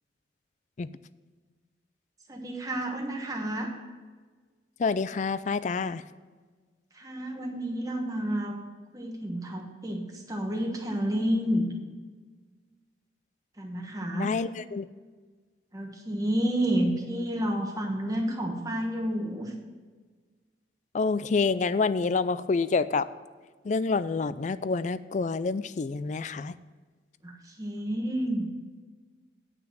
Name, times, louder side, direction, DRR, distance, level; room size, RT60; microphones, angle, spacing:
voice 1, 2.3-3.7 6.9-8.6 8.9-11.7 13.6-14.3 15.7-19.5 27.2-28.5, right 1 dB, 20° right, 1 dB, 1.2 m, -30 dB
voice 2, 4.8-6.0 14.1-14.9 20.9-23.1 23.6-26.5, left 4 dB, 40° left, 15 dB, 0.3 m, -27 dB
9.3 x 5.9 x 7.4 m, 1.4 s
head